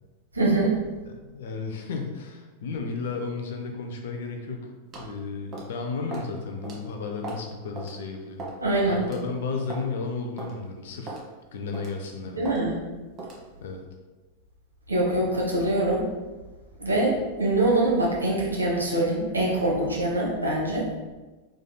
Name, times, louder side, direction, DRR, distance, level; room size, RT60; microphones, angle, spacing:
voice 1, 0.3-0.8 8.6-9.0 12.4-12.8 14.9-16.0 16.8-20.9, right 2 dB, 80° right, -4 dB, 0.9 m, -24 dB
voice 2, 1.0-4.7 4.9-8.4 8.9-11.2 11.5-12.5 13.6-13.8, left 4 dB, 60° left, 3 dB, 0.5 m, -33 dB
sound 1, 4.9-5.1 5.5-5.7 6.1-6.3 6.6-6.8 7.2-7.5 7.8-7.9 8.4-8.6 9.0-9.2 9.7-9.9 10.4-10.5 11.1-11.3 11.7-12.0 12.5-12.6 13.2-13.4, right 3 dB, 30° right, 0.9 m, -37 dB
4.9 x 3.3 x 2.2 m, 1.2 s
figure-of-eight pair, 90°, 0 cm